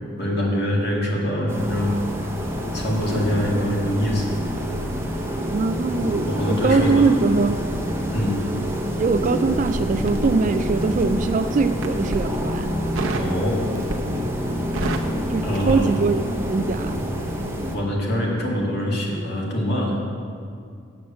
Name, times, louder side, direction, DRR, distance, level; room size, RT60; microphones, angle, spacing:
voice 1, 0.2-2.2 2.7-4.3 5.6-7.1 8.1-8.4 13.2-13.6 15.4-16.0 17.7-20.0, equal, 50° left, -3 dB, 2.1 m, -24 dB
sound 1, 1.5-17.8, equal, 10° right, 0.7 m, -27 dB
voice 2, 5.5-7.6 9.0-12.7 15.3-16.2 16.5-17.0, right 4 dB, 40° right, 8 dB, 0.3 m, -22 dB
Crackle, 10.0-11.2 11.7-12.3 13.0-13.4 13.7-14.2 14.5-16.4 16.7-16.9, right 2 dB, 75° right, 0.8 m, -30 dB
7.8 x 7.0 x 7.4 m, 2.3 s
head